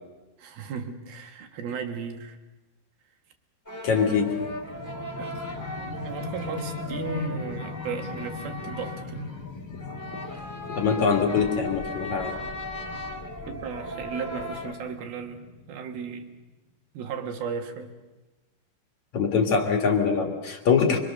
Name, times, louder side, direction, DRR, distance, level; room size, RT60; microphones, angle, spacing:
voice 1, 0.4-2.4 5.2-5.4 5.8-9.3 12.8-13.0 13.5-16.3 16.9-17.9, right 5 dB, 60° right, 5 dB, 3.1 m, -35 dB
sound 1, 3.7-14.7, left 1 dB, 5° left, 1.8 m, -37 dB
voice 2, 3.8-4.4 10.7-12.3 19.1-21.0, left 6 dB, 55° left, 3 dB, 2.4 m, -23 dB
sound 2, 4.1-16.3, left 4 dB, 20° left, 3.7 m, -41 dB
26.5 x 25.0 x 6.6 m, 1.1 s
omnidirectional pair, 5.5 m